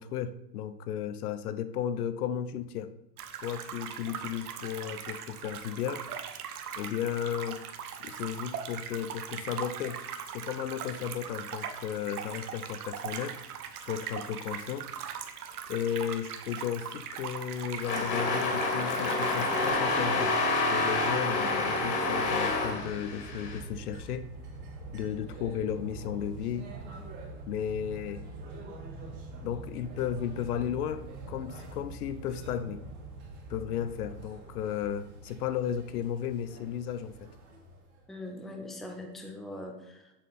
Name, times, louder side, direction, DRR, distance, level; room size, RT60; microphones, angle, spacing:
voice 1, 0.0-2.9 3.4-6.0 6.8-7.6 8.0-10.0 10.3-13.4 13.9-14.9 15.7-24.3 24.9-26.7 27.5-28.2 29.4-32.8 33.5-37.3, left 9 dB, 65° left, 12 dB, 0.8 m, -34 dB
sound 1, 3.2-19.7, right 8 dB, 60° right, 1.2 m, -40 dB
sound 2, 17.8-23.6, left 3 dB, 40° left, 2.2 m, -28 dB
sound 3, 21.0-38.0, right 3 dB, 35° right, 2.7 m, -45 dB
voice 2, 38.1-40.1, left 1 dB, ahead, 2 dB, 0.6 m, -41 dB
7.5 x 6.5 x 4.2 m, 0.93 s
hypercardioid pair, 120°, 50 cm